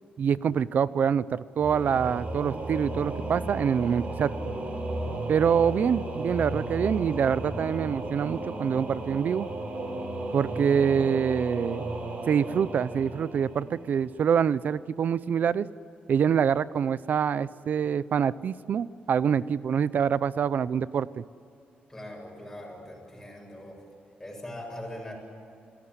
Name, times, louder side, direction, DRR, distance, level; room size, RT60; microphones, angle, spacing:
voice 1, 0.2-4.5 5.3-9.5 10.3-11.9 12.3-15.7 16.1-21.2, right 7 dB, 55° right, 17 dB, 0.6 m, -25 dB
Singing / Musical instrument, 1.6-14.1, right 2 dB, 40° right, 4.1 m, -34 dB
voice 2, 21.9-23.8 24.2-25.1, left 1 dB, 10° left, 0 dB, 7.3 m, -41 dB
27.5 x 17.5 x 9.7 m, 2.7 s
wide cardioid pair, 140°, 3 cm